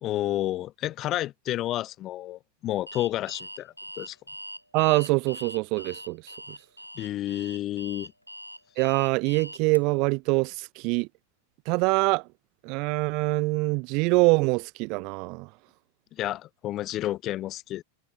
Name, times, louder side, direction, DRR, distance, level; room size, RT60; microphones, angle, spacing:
voice 1, 0.0-4.2 7.0-8.1 16.2-17.8, left 14 dB, 35° left, 2.4 m, -30 dB
Alarm, 2.9-9.8, equal, 90° left, 1.2 m, -42 dB
voice 2, 4.7-6.2 8.8-11.1 11.7-12.2 12.6-15.5, right 29 dB, 45° right, 0.3 m, -24 dB
figure-of-eight pair, 90°, 0 cm